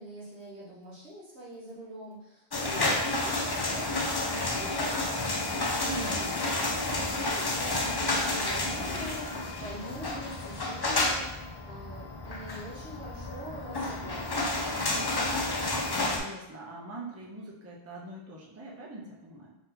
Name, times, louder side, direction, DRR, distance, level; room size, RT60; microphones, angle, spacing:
voice 1, 0.0-11.3 11.6-15.4, right 1 dB, 90° right, -7 dB, 1.6 m, -44 dB
sound 1, 2.5-16.2, left 2 dB, 35° left, 0.4 m, -30 dB
voice 2, 5.8-6.3 15.9-19.6, right 2 dB, 20° right, -3 dB, 0.5 m, -42 dB
4.0 x 2.7 x 3.9 m, 0.87 s
omnidirectional pair, 1.1 m